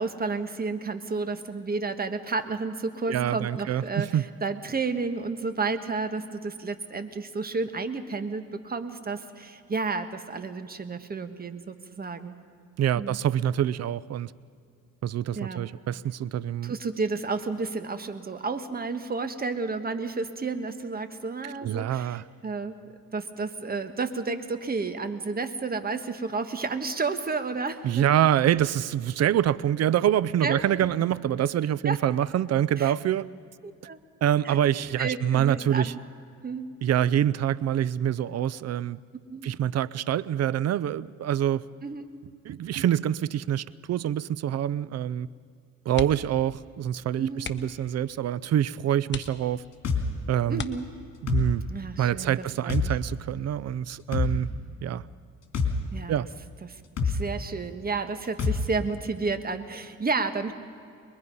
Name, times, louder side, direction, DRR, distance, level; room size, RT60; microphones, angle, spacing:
voice 1, 0.0-12.3 13.0-13.2 15.3-15.7 16.6-22.8 23.1-28.3 30.4-30.6 31.8-32.0 32.8-32.9 33.6-34.0 34.4-34.6 35.0-36.0 36.4-36.7 39.3-39.5 41.8-42.1 47.2-47.5 50.5-50.9 51.7-52.9 55.9-56.3 56.6-60.5, right 4 dB, 30° right, 9 dB, 1.5 m, -31 dB
voice 2, 3.1-4.2 12.8-14.3 15.0-16.7 21.4-22.2 27.8-33.3 34.2-35.9 36.8-39.0 39.4-41.6 42.4-45.3 45.9-49.6 50.3-50.6 51.2-51.6 52.0-54.5 54.8-55.0 56.1-56.3, right 10 dB, 55° right, 20 dB, 0.6 m, -26 dB
sound 1, 45.9-46.4 46.7-46.9 47.4-47.9 48.5-48.6 49.1-49.8 50.5-51.3 52.9-53.2 53.5-53.6, left 6 dB, 40° left, 1.2 m, -38 dB
sound 2, 49.8-50.0 51.3-51.5 52.7-52.9 54.1-54.3 55.5-55.7 57.0-57.2 58.4-58.6, left 6 dB, 60° left, 3.0 m, -25 dB
23.5 x 22.0 x 5.5 m, 2.4 s
cardioid pair, 90°, 30 cm